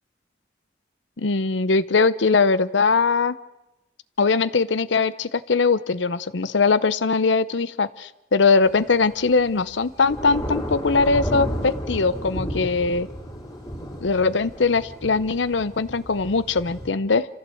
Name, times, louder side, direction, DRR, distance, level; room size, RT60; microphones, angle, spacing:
voice 1, 1.2-3.4 4.2-13.1 14.0-17.3, left 4 dB, 85° left, 17 dB, 0.7 m, -21 dB
Thunder / Rain, 8.6-16.9, equal, 20° left, 3.4 m, -33 dB
27.5 x 14.5 x 7.7 m, 1.0 s
head